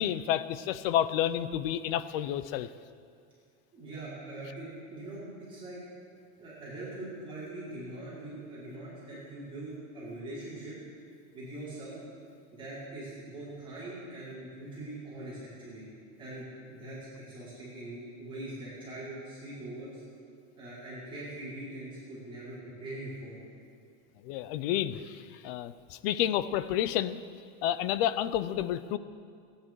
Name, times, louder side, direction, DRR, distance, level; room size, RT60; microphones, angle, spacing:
voice 1, 0.0-2.7 24.2-27.2 27.6-29.0, left 11 dB, 45° left, 15 dB, 0.6 m, -30 dB
voice 2, 3.7-5.8 6.4-10.8 11.3-12.0 12.5-15.8 16.2-20.0 20.6-23.4, right 1 dB, 10° right, -10 dB, 4.9 m, -42 dB
29.5 x 10.0 x 4.7 m, 2.3 s
supercardioid pair, 180°, 41 cm